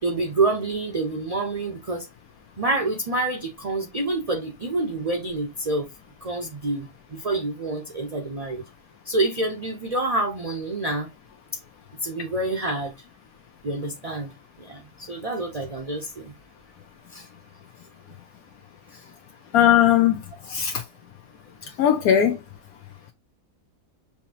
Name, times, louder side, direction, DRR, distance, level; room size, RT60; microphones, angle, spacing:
voice 1, 0.0-2.1 2.6-5.9 6.2-8.6 9.0-11.1 12.0-12.9 13.6-14.3 14.6-16.3 17.1-17.3 18.9-19.0 21.6-21.8, right 2 dB, 35° right, 0.7 m, -27 dB
voice 2, 19.5-20.2 20.5-20.7 21.8-22.4, left 10 dB, 80° left, 1.1 m, -18 dB
5.8 x 2.8 x 2.8 m
omnidirectional pair, 1.5 m